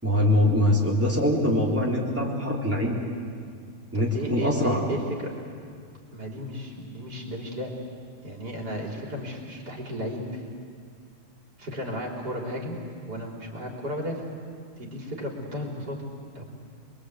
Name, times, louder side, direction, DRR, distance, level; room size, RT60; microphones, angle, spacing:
voice 1, 0.0-3.0 3.9-4.8, left 1 dB, 10° right, -4 dB, 3.7 m, -23 dB
voice 2, 3.9-5.4 6.1-7.7 8.2-10.4 11.6-14.3 14.8-16.0 16.3-16.4, equal, 80° right, -2 dB, 4.1 m, -34 dB
26.5 x 22.5 x 8.2 m, 2.1 s
omnidirectional pair, 1.7 m